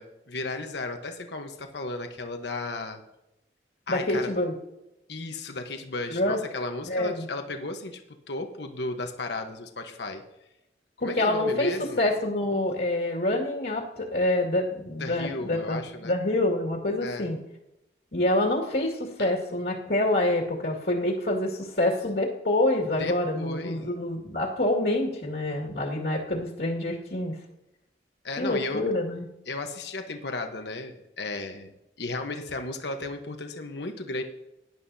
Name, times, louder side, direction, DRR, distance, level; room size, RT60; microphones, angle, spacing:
voice 1, 0.0-3.0 3.9-4.3 5.1-8.0 8.3-10.2 11.0-12.0 15.0-16.1 17.0-17.3 19.2-19.3 23.0-23.9 28.2-28.9 29.5-31.7 32.0-34.2, left 2 dB, 80° left, 5 dB, 1.2 m, -34 dB
voice 2, 3.9-4.5 6.1-6.4 6.9-7.3 11.0-17.4 18.1-27.3 28.4-29.3, left 1 dB, 65° left, -2 dB, 2.1 m, -26 dB
17.5 x 11.0 x 2.8 m, 0.91 s
head